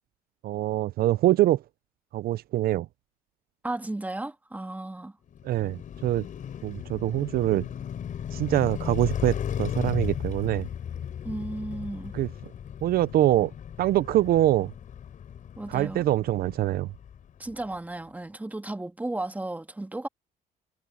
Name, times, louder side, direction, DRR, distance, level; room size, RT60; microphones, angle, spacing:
voice 1, 0.4-1.6 2.1-2.9 5.4-6.2 6.6-7.6 8.3-10.7 12.1-12.3 12.8-13.5 13.8-14.7 15.7-16.9, right 14 dB, 60° right, 0.5 m, -24 dB
voice 2, 3.6-5.1 11.2-12.2 15.6-16.0 17.4-20.1, right 2 dB, 10° right, 2.0 m, -34 dB
Car passing by, 5.3-17.5, left 9 dB, 50° left, 4.7 m, -36 dB
cardioid pair, 110°, 17 cm